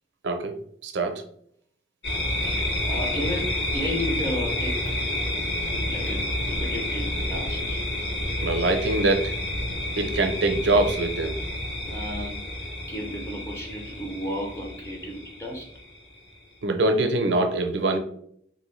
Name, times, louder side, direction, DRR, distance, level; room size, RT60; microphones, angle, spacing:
voice 1, 0.2-0.6 0.8-1.2 8.4-9.3 10.0-11.4 16.6-18.0, right 2 dB, 70° right, 5 dB, 0.5 m, -23 dB
sound 1, 2.0-16.3, left 1 dB, 65° left, 1.0 m, -29 dB
voice 2, 2.4-5.0 5.9-7.8 11.9-12.4 12.9-15.7, left 1 dB, 15° left, 0 dB, 0.4 m, -33 dB
3.3 x 2.6 x 3.1 m, 0.68 s
head